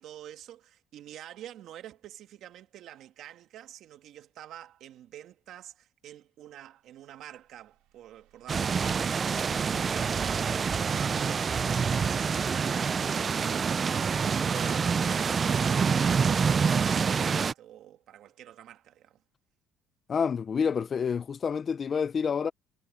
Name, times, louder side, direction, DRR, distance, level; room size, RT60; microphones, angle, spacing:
voice 1, 0.0-12.6 13.1-19.2, right 12 dB, 55° right, 1.9 m, -47 dB
sound 1, 7.4-11.4, right 17 dB, 75° right, 4.1 m, -54 dB
sound 2, 8.5-17.5, right 6 dB, 25° right, 0.3 m, -26 dB
voice 2, 20.1-22.5, left 6 dB, 30° left, 0.5 m, -28 dB
cardioid pair, 145°, 0 cm